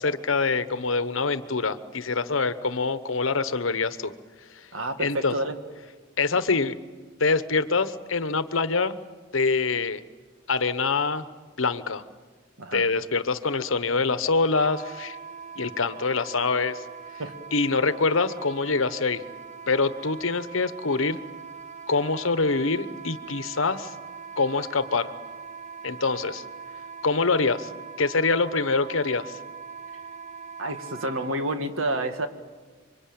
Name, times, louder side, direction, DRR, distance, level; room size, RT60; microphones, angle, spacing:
voice 1, 0.0-4.1 4.5-4.7 5.0-5.3 6.2-6.8 7.2-9.0 9.3-10.0 10.5-11.2 11.6-12.0 12.7-15.2 15.6-16.8 17.5-19.2 19.7-21.2 21.9-23.9 24.4-25.1 25.8-26.4 27.0-27.7 28.0-29.4, left 4 dB, 70° left, 13 dB, 1.1 m, -25 dB
voice 2, 4.7-5.6 12.6-12.8 17.2-17.3 30.6-32.3, right 1 dB, 75° right, 7 dB, 2.0 m, -29 dB
Wind instrument woodwind instrument, 14.5-31.3, right 6 dB, 35° right, 0.8 m, -42 dB
27.5 x 24.5 x 8.7 m, 1.4 s
head